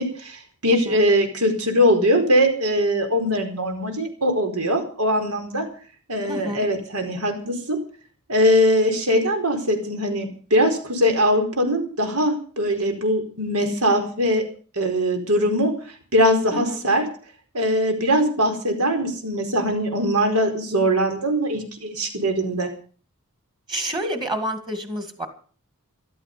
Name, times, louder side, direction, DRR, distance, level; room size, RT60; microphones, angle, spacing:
voice 1, 0.0-5.7 6.1-7.8 8.3-14.4 14.8-15.7 16.1-17.1 17.5-22.7, equal, 90° right, 5 dB, 4.7 m, -21 dB
voice 2, 6.3-6.6 16.5-16.8 23.7-25.3, equal, 20° right, 8 dB, 2.2 m, -28 dB
14.5 x 13.0 x 6.8 m, 0.42 s
head